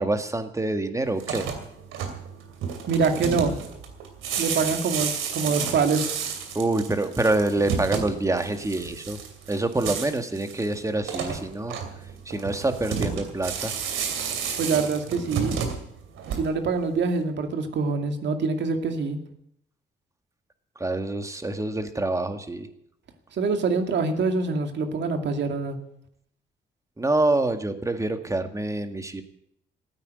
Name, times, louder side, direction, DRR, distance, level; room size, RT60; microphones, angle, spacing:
voice 1, 0.0-1.5 6.5-9.2 9.5-11.8 12.3-13.7 20.8-22.7 27.0-29.2, right 2 dB, 15° right, 8 dB, 1.8 m, -26 dB
sound 1, 1.1-16.8, right 6 dB, 90° right, 2.7 m, -32 dB
voice 2, 2.9-3.6 4.4-6.1 14.6-15.5 16.3-19.2 23.3-25.8, right 4 dB, 65° right, 6 dB, 2.3 m, -25 dB
14.5 x 9.1 x 9.4 m, 0.74 s
cardioid pair, 90°, 20 cm